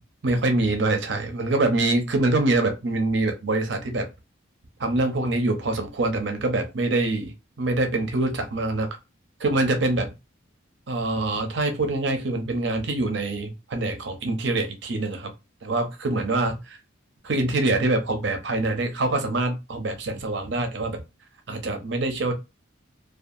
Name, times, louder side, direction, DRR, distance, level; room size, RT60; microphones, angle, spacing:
voice 1, 0.2-4.1 4.8-8.9 9.4-10.1 10.9-15.3 15.6-16.8 17.2-21.0 21.5-22.3, right 2 dB, 60° right, 0.6 m, -25 dB
2.6 x 2.3 x 2.4 m
head